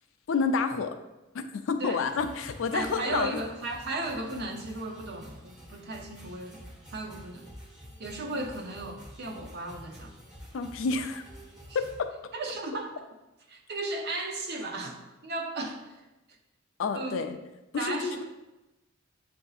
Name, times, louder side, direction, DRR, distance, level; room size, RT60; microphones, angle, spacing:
voice 1, 0.3-1.0 1.3-3.4 8.4-8.5 10.5-11.2 11.7-12.1 16.8-17.4 17.7-18.2, left 4 dB, 70° left, 8 dB, 0.4 m, -29 dB
sound 1, 2.0-12.0, equal, 5° right, 0.9 m, -49 dB
voice 2, 2.7-6.7 6.9-7.5 8.0-10.1 11.7-11.8 12.3-12.9 13.5-16.0 16.9-17.3 17.8-18.2, right 2 dB, 55° right, 3 dB, 0.6 m, -35 dB
7.5 x 2.6 x 2.4 m, 1.0 s
head